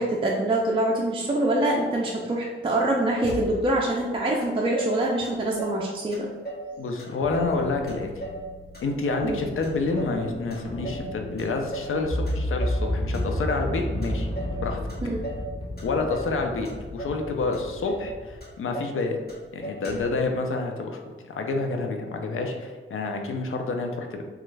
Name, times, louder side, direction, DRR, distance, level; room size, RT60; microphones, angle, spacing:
voice 1, 0.0-6.3 9.2-9.4 15.0-15.2, right 1 dB, 25° right, -2 dB, 0.4 m, -25 dB
Motor vehicle (road), 3.2-3.9 4.4-4.5 4.7-5.8 6.1-6.7 7.0-7.6 7.9-9.3 9.6-10.2 10.5-11.1 11.4-12.0 12.3-12.8 13.1-13.7 14.0-14.6 14.9-15.5 15.8-16.4 16.6-17.2 17.5-17.6 17.9-18.1 18.4-19.0 19.3-19.4 19.6-20.2, right 2 dB, 50° left, 1.3 m, -37 dB
voice 2, 6.8-8.1 8.8-14.3 14.6-14.8 15.8-19.2 19.5-24.2, left 3 dB, 80° left, 3 dB, 0.4 m, -28 dB
sound 1, 7.1-18.4, left 1 dB, 25° left, 0.6 m, -32 dB
3.1 x 2.4 x 3.2 m, 1.4 s
wide cardioid pair, 90°, 21 cm